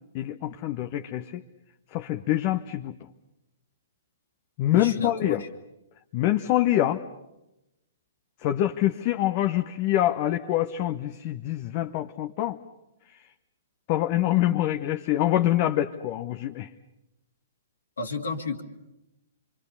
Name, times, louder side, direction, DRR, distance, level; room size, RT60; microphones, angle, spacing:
voice 1, 0.1-1.4 1.9-3.0 4.6-5.4 6.1-7.0 8.4-12.6 13.9-16.7, left 13 dB, 40° left, 7 dB, 1.0 m, -25 dB
voice 2, 4.7-5.5 18.0-18.6, left 3 dB, 70° left, 2 dB, 2.3 m, -32 dB
27.0 x 24.0 x 6.9 m, 0.92 s
figure-of-eight pair, 115°, 0 cm